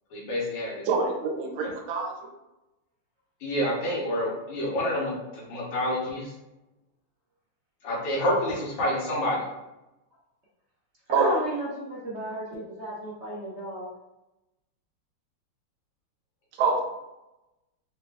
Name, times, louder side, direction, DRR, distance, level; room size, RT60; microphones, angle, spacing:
voice 1, 0.1-0.7 1.6-1.7 3.4-6.3 7.8-9.4, left 1 dB, 85° left, -5 dB, 2.0 m, -28 dB
voice 2, 0.9-2.1 11.1-11.3 16.6-16.8, right 5 dB, 75° right, 1 dB, 1.4 m, -25 dB
voice 3, 11.1-13.9, right 1 dB, 55° right, -7 dB, 0.7 m, -33 dB
4.2 x 2.2 x 3.4 m, 0.95 s
omnidirectional pair, 2.4 m